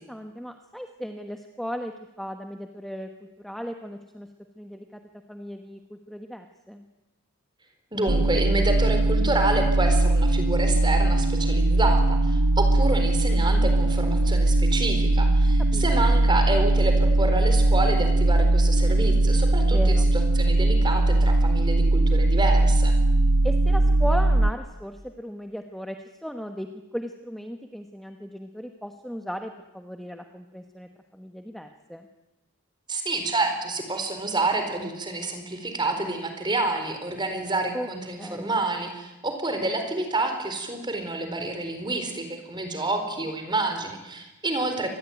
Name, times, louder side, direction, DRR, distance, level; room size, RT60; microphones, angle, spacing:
voice 1, 0.1-1.9 2.2-4.3 4.6-5.0 5.3-6.8 15.7-15.8 19.6-20.1 23.4-32.1 37.7-37.9 38.2-38.5, equal, ahead, 5 dB, 1.1 m, -36 dB
voice 2, 7.9-23.0 32.9-44.9, right 2 dB, 20° right, 6 dB, 4.2 m, -28 dB
sound 1, 8.1-24.5, right 2 dB, 75° right, 1.0 m, -20 dB
25.5 x 20.0 x 9.4 m, 1.1 s
head